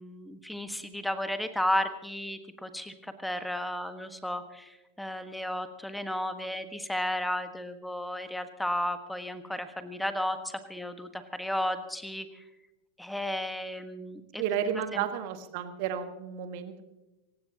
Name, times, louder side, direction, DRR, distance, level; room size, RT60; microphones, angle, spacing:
voice 1, 0.0-12.4 13.0-14.4 14.9-15.0, left 1 dB, 5° left, 9 dB, 1.5 m, -33 dB
voice 2, 14.4-16.8, right 8 dB, 45° right, 8 dB, 1.7 m, -32 dB
23.5 x 18.5 x 2.9 m, 1.0 s
figure-of-eight pair, 90°, 0 cm